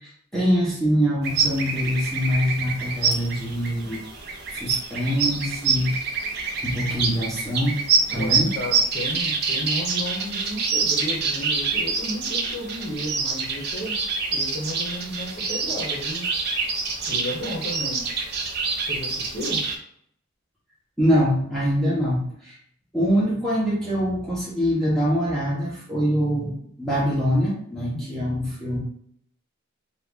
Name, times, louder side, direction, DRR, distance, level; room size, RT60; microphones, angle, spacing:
voice 1, 0.0-4.0 4.5-6.0 6.6-7.8 8.1-8.5 21.0-22.5 22.9-26.5 26.8-28.8, equal, ahead, -8 dB, 0.9 m, -24 dB
sound 1, 1.2-19.7, right 4 dB, 50° right, 0.7 m, -26 dB
voice 2, 8.1-14.0 14.3-16.3 17.1-18.1 18.9-19.6 27.9-28.3, left 1 dB, 40° left, -5 dB, 0.9 m, -33 dB
3.0 x 2.4 x 3.6 m, 0.67 s
head